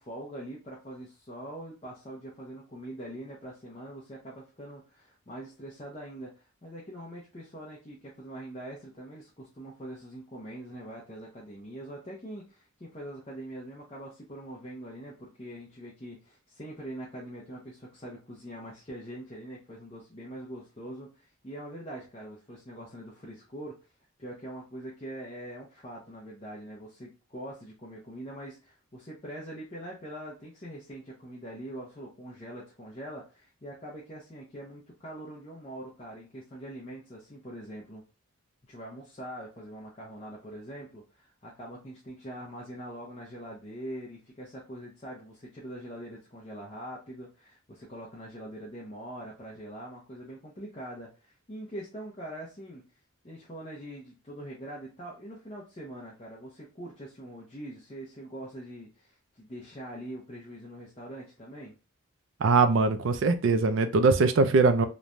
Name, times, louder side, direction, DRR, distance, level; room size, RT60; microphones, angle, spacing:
voice 1, 0.0-23.8 24.2-38.0 38.7-52.8 53.2-61.8, right 1 dB, 30° left, -5 dB, 0.6 m, -43 dB
voice 2, 62.4-64.9, right 3 dB, 60° right, 9 dB, 0.4 m, -22 dB
3.1 x 2.1 x 2.5 m, 0.32 s
head